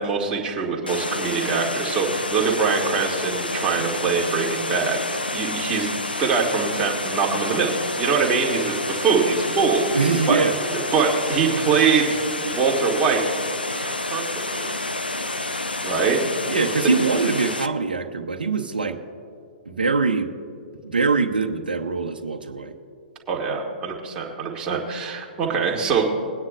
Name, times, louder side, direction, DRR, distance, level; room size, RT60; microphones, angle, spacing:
voice 1, 0.0-5.9 6.2-7.7 8.0-9.8 10.3-10.4 10.9-12.2 12.5-13.2 13.8-14.2 14.7-14.8 15.8-16.2 23.3-26.1, right 5 dB, 20° right, -2 dB, 2.1 m, -23 dB
Water, 0.9-17.7, left 2 dB, 85° left, 0.7 m, -29 dB
voice 2, 9.9-10.6 16.5-19.0 19.7-20.3 20.8-22.7, right 4 dB, 75° right, 4 dB, 0.9 m, -23 dB
21.5 x 9.5 x 2.5 m, 2.4 s
figure-of-eight pair, 120°, 5 cm